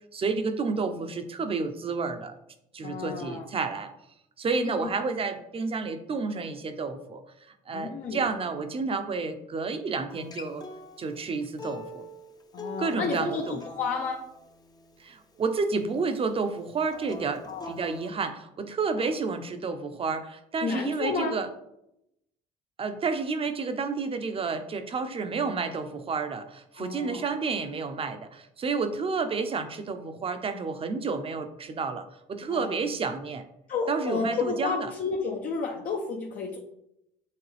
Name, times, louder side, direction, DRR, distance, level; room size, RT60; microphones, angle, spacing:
voice 1, 0.1-2.4 2.7-3.9 4.4-7.2 7.7-10.6 11.0-12.1 12.8-13.6 15.0-21.5 22.8-33.4 33.9-34.9, right 4 dB, 35° right, 8 dB, 0.7 m, -30 dB
voice 2, 2.8-3.5 4.6-4.9 7.7-8.2 12.5-14.3 17.5-17.7 19.0-19.1 20.6-21.4 26.7-27.2 32.5-32.7 33.7-36.6, left 4 dB, 55° left, 0 dB, 0.8 m, -31 dB
Acoustic guitar, 10.1-15.3 16.9-18.1, left 2 dB, 25° left, 0.7 m, -44 dB
8.5 x 3.6 x 3.4 m, 0.82 s
cardioid pair, 110°, 17 cm